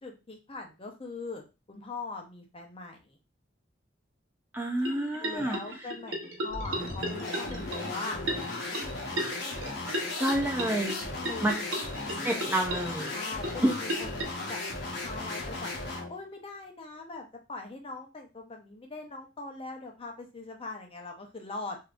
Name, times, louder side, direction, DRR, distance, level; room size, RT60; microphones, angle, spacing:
voice 1, 0.0-3.2 5.2-8.2 11.1-11.6 12.1-12.5 13.1-14.6 15.0-15.7 16.1-21.8, left 3 dB, 30° left, 3 dB, 0.7 m, -41 dB
voice 2, 4.5-5.9 9.5-9.7 10.2-11.0 11.4-11.5 12.2-13.1 13.6-13.7, right 1 dB, 10° right, 0 dB, 0.4 m, -29 dB
sound 1, 4.8-14.2, right 1 dB, 80° right, 0.9 m, -37 dB
sound 2, 6.5-16.2, left 2 dB, 65° left, 0.9 m, -36 dB
3.4 x 2.7 x 2.4 m, 0.28 s
head